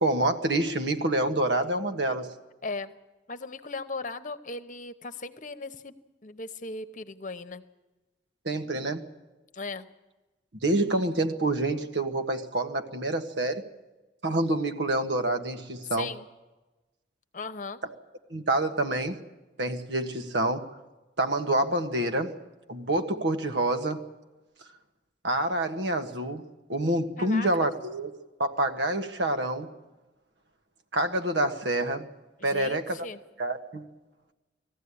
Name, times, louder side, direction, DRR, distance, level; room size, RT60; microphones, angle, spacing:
voice 1, 0.0-2.3 8.4-9.0 10.6-13.6 14.2-16.1 18.3-19.2 19.6-20.7 21.2-22.3 22.7-24.0 25.2-26.4 26.7-28.1 28.4-29.7 30.9-32.1 32.4-33.0 33.4-33.9, right 1 dB, 80° right, 7 dB, 1.5 m, -27 dB
voice 2, 2.6-2.9 3.3-5.9 6.2-7.6 9.5-9.9 16.0-16.2 17.3-17.8 27.2-27.7 32.4-33.2, left 3 dB, 45° left, 11 dB, 1.0 m, -37 dB
19.5 x 15.0 x 9.9 m, 1.1 s
head